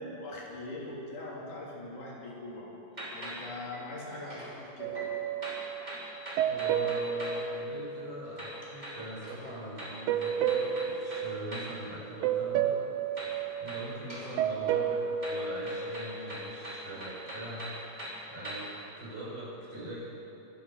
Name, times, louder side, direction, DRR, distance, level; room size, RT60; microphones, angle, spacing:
voice 1, 0.0-2.7 3.1-4.9, left 1 dB, 90° left, -5 dB, 4.6 m, -41 dB
sound 1, 2.9-4.6 4.9-7.5 8.4-11.8 13.2-14.4 14.7-18.8, equal, 15° right, 3.1 m, -43 dB
sound 2, 4.8-8.6 10.1-11.9 12.2-16.8, right 8 dB, 85° right, 2.1 m, -32 dB
voice 2, 6.5-12.8 13.1-13.3 13.6-17.7 18.3-18.7 19.0-20.0, right 1 dB, 40° right, -6 dB, 5.3 m, -42 dB
24.5 x 8.8 x 6.6 m, 2.9 s
omnidirectional pair, 3.4 m